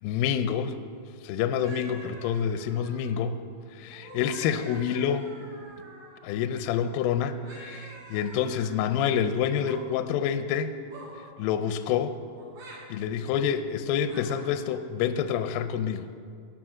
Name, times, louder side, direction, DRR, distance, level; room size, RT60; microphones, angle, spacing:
voice 1, 0.0-0.8 1.2-3.4 3.7-5.3 6.2-10.7 11.4-12.2 12.9-16.1, left 8 dB, 80° left, 10 dB, 2.2 m, -27 dB
sound 1, 1.6-3.2 3.9-6.3 7.4-8.8 9.5-9.8 10.9-11.2 12.3-12.8 14.0-14.4, right 1 dB, 60° right, 3.5 m, -47 dB
12.5 x 5.6 x 6.2 m, 2.3 s
omnidirectional pair, 4.5 m